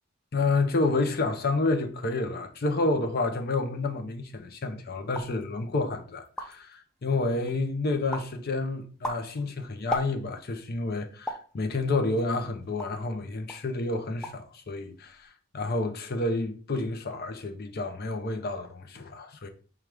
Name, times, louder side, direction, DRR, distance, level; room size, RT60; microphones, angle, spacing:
voice 1, 0.3-19.5, left 2 dB, 45° left, 0.6 m, -29 dB
sound 1, 5.1-5.4 5.9-6.0 6.2-6.7 7.2-7.7 8.1-8.4 8.8-10.5 11.3-11.5 12.2-13.1 13.5-13.7 14.0-14.5 14.8-15.3, equal, 5° left, 0.4 m, -37 dB
4.6 x 2.4 x 4.8 m
head